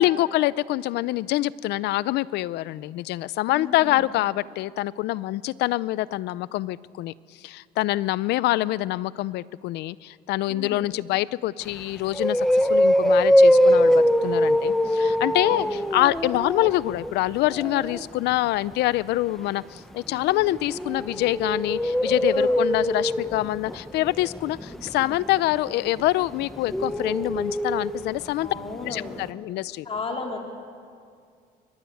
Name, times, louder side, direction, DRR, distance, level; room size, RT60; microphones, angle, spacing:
voice 1, 0.0-28.5 28.9-29.9, left 16 dB, 80° left, 20 dB, 0.6 m, -25 dB
voice 2, 3.5-4.0 10.5-10.9 15.3-15.7 22.3-22.6 28.4-29.2 29.9-30.4, left 4 dB, 35° left, 2 dB, 3.7 m, -35 dB
sound 1, 11.7-11.8 12.1-18.0 20.2-28.2 28.5-28.6 28.9-29.0, equal, ahead, 1.2 m, -22 dB
23.5 x 23.0 x 9.2 m, 2.2 s
cardioid pair, 110°, 17 cm